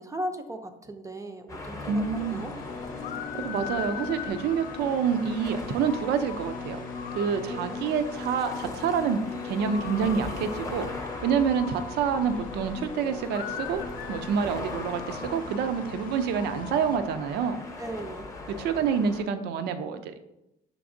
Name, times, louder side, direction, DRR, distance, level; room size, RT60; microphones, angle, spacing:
voice 1, 0.0-2.5 7.5-7.9 17.8-18.3, right 1 dB, 20° right, 6 dB, 0.4 m, -37 dB
sound 1, 1.5-19.2, left 2 dB, 20° left, 0.7 m, -40 dB
voice 2, 1.9-2.5 3.3-6.8 7.1-10.9 11.2-13.8 14.1-17.6 18.6-20.2, right 6 dB, 75° right, 9 dB, 0.4 m, -27 dB
sound 2, 2.2-17.0, left 6 dB, 55° left, 0.4 m, -39 dB
5.9 x 3.4 x 2.5 m, 0.88 s
cardioid pair, 110°, 17 cm